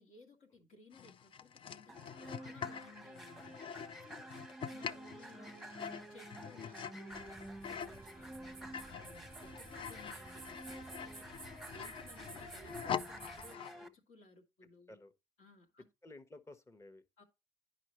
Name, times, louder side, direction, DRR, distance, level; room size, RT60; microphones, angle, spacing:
voice 1, 0.0-3.6 4.0-4.3 4.7-11.3 11.7-15.0 15.4-15.8 17.2-17.3, left 2 dB, 70° left, 1.6 m, -60 dB
sound 1, 0.9-8.0 8.4-13.8, left 8 dB, 45° left, 0.4 m, -45 dB
sound 2, 1.9-13.9, right 1 dB, ahead, 0.9 m, -50 dB
sound 3, 7.1-13.6, right 4 dB, 20° right, 0.4 m, -54 dB
voice 2, 13.6-13.9 14.9-15.1 16.0-17.0, left 2 dB, 20° left, 1.0 m, -56 dB
10.0 x 5.0 x 3.0 m
supercardioid pair, 65°, 12 cm